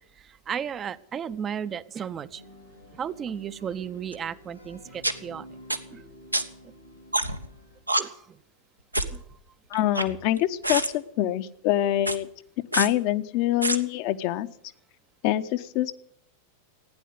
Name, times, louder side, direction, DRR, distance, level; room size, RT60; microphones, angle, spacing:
voice 1, 0.2-2.4 2.9-5.5 5.9-6.0 8.0-8.4 9.0-9.2, right 8 dB, 25° right, 14 dB, 0.6 m, -34 dB
sound 1, 2.3-7.8, equal, 90° left, 3.7 m, -50 dB
sound 2, 4.1-4.2 5.0-5.1 5.7-5.8 6.3-6.4 7.1-7.5 7.9-8.0 8.9-9.2 9.7-10.4 10.6-10.9 12.0-12.2 12.7-12.9 13.6-13.8, right 1 dB, 85° right, 1.1 m, -26 dB
voice 2, 9.7-12.3 12.7-14.5 15.2-15.9, left 13 dB, 45° left, 12 dB, 0.8 m, -25 dB
16.0 x 10.0 x 8.1 m, 0.72 s
figure-of-eight pair, 90°, 0 cm